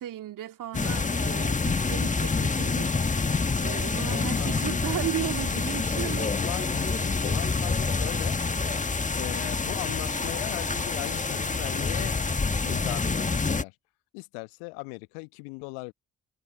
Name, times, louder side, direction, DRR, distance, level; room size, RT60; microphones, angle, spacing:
voice 1, 0.0-3.0 3.6-6.3, right 12 dB, 55° right, 2.6 m, -35 dB
sound 1, 0.7-13.6, left 4 dB, 20° left, 1.5 m, -27 dB
voice 2, 4.1-4.7 6.3-8.4 9.2-12.1 12.6-13.7 14.1-15.9, left 36 dB, 70° left, 1.3 m, -38 dB
figure-of-eight pair, 40°, 38 cm